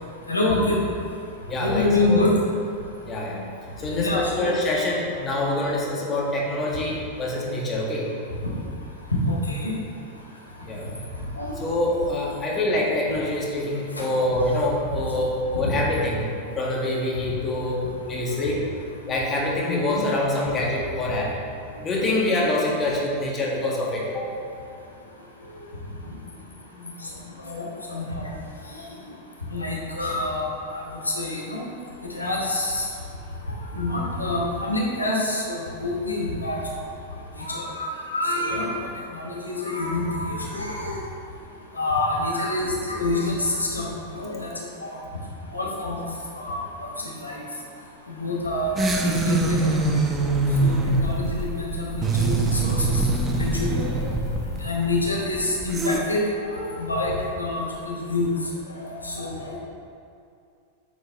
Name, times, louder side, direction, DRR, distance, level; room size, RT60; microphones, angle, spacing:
voice 1, 0.3-0.8 1.6-2.3 3.9-4.5 8.4-8.5 9.3-9.7 11.4-11.5 13.1-13.2 19.7-19.8 27.5-28.3 29.5-30.8 31.1-31.6 32.1-32.9 33.7-36.6 37.4-38.7 39.1-41.0 41.8-43.9 44.1-44.5 44.8-45.0 45.5-46.0 46.4-46.9 47.2-47.3 48.2-48.7 49.0-49.8 50.6-53.0 53.3-54.1 54.6-58.3 59.0-59.6, left 2 dB, 80° left, -3 dB, 1.3 m, -26 dB
voice 2, 1.5-2.2 3.0-3.5 3.8-8.1 10.7-10.9 11.6-16.2 16.5-18.6 19.1-21.3 21.8-24.3 38.5-38.6, left 1 dB, 25° left, -4 dB, 1.7 m, -25 dB
sound 1, 48.8-56.0, right 2 dB, 20° right, 0.8 m, -23 dB
9.3 x 6.5 x 3.3 m, 2.5 s
figure-of-eight pair, 90°, 0 cm